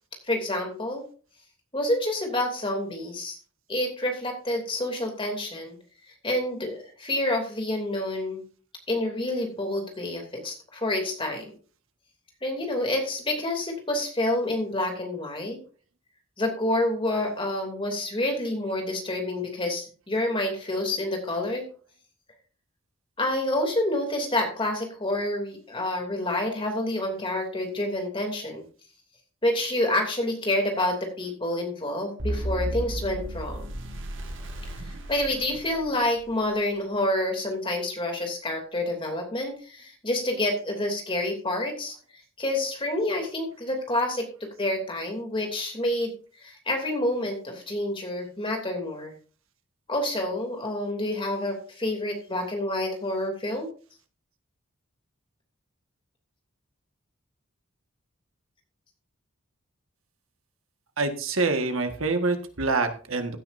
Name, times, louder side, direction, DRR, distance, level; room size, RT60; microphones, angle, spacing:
voice 1, 0.2-1.0 1.7-3.4 3.7-5.8 6.2-8.4 8.9-11.4 12.4-15.6 16.4-21.7 23.2-28.7 29.4-33.6 34.8-41.9 42.4-46.1 46.4-49.1 49.9-53.7, left 1 dB, 25° left, 2 dB, 2.8 m, -28 dB
sound 1, 32.2-36.3, right 1 dB, 65° right, 2.0 m, -34 dB
voice 2, 61.0-63.4, right 3 dB, 80° right, 6 dB, 1.6 m, -26 dB
16.0 x 9.7 x 2.7 m, 0.39 s
head